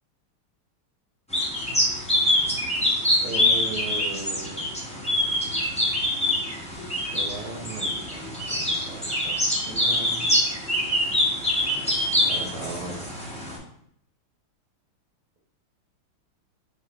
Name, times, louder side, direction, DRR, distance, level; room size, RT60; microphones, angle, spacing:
sound 1, 1.3-13.6, left 1 dB, 10° left, 0.4 m, -25 dB
voice 1, 3.2-5.2 7.1-10.2 12.2-13.1, right 4 dB, 80° right, -2 dB, 1.7 m, -37 dB
4.0 x 3.4 x 3.7 m, 0.70 s
omnidirectional pair, 2.3 m